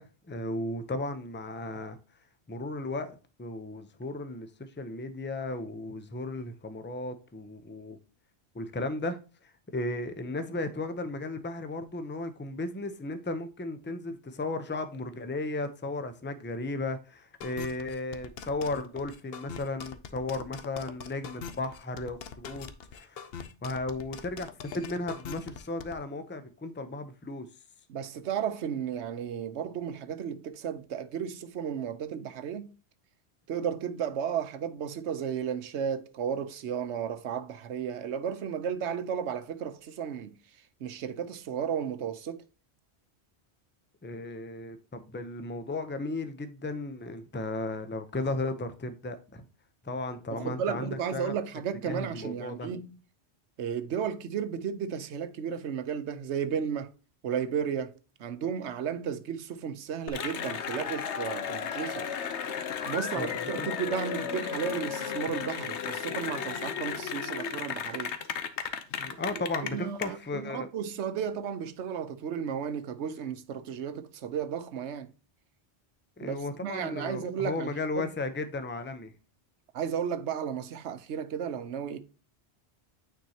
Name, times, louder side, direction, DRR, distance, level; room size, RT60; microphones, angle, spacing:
voice 1, 0.0-2.0 2.5-3.1 3.4-8.0 8.5-22.7 22.9-23.2 23.6-27.5 44.0-49.4 49.8-51.3 51.8-52.7 63.0-63.3 63.6-63.7 69.0-70.7 76.2-79.1, left 2 dB, 15° left, 0.5 m, -35 dB
sound 1, 17.4-26.0, left 6 dB, 65° left, 0.9 m, -42 dB
voice 2, 27.9-32.7 33.5-40.4 40.8-42.4 50.3-52.9 53.6-56.9 57.2-57.9 58.2-62.1 62.8-68.2 69.6-75.1 76.2-77.7 78.0-78.1 79.7-82.0, right 8 dB, 85° right, 1.0 m, -33 dB
Cheering / Applause, 60.1-70.0, left 7 dB, 85° left, 1.1 m, -34 dB
9.2 x 4.4 x 2.8 m
omnidirectional pair, 1.1 m